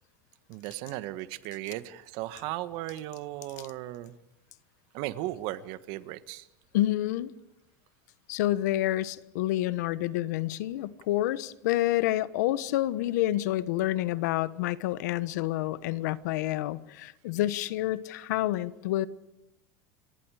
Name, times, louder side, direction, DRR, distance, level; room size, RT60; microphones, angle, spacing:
voice 1, 0.5-4.2 4.9-6.5, right 15 dB, 60° right, 13 dB, 1.5 m, -36 dB
voice 2, 6.7-7.3 8.3-19.1, left 15 dB, 80° left, 16 dB, 1.1 m, -28 dB
29.5 x 24.0 x 5.0 m, 0.82 s
supercardioid pair, 130°, 9 cm